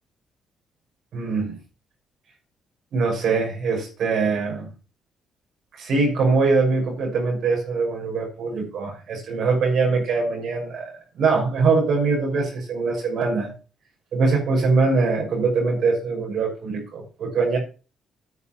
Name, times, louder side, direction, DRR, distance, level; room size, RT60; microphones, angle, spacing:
voice 1, 1.1-1.6 2.9-4.7 5.8-13.5 14.1-17.6, right 4 dB, 70° right, 1 dB, 6.0 m, -22 dB
9.8 x 7.1 x 7.2 m, 0.35 s
cardioid pair, 90°, 0 cm